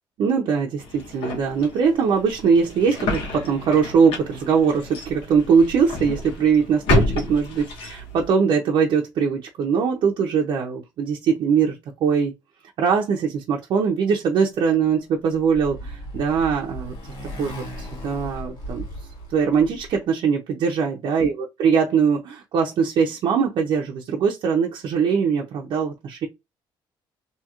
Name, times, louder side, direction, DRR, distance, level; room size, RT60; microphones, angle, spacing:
voice 1, 0.2-12.3 12.8-16.9 17.4-18.8 19.3-21.3 21.6-26.3, right 6 dB, 60° right, 0.6 m, -21 dB
sound 1, 0.8-8.3, left 2 dB, 80° left, 1.0 m, -29 dB
Motorcycle, 15.0-20.0, equal, 60° left, 1.5 m, -36 dB
2.8 x 2.8 x 2.4 m
cardioid pair, 150°, 9 cm